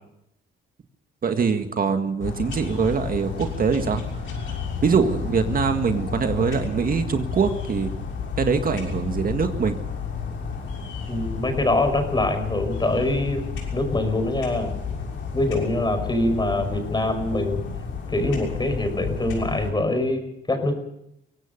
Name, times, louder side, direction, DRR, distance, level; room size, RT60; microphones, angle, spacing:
voice 1, 1.2-4.0 4.8-7.9 8.4-9.8, right 5 dB, 45° right, 7 dB, 1.8 m, -23 dB
sound 1, 2.2-19.7, left 5 dB, 75° left, 6.4 m, -31 dB
voice 2, 11.1-14.7 15.3-17.6 18.1-20.8, left 2 dB, 20° left, 8 dB, 5.5 m, -24 dB
23.5 x 17.5 x 6.8 m, 0.80 s
cardioid pair, 90°, 20 cm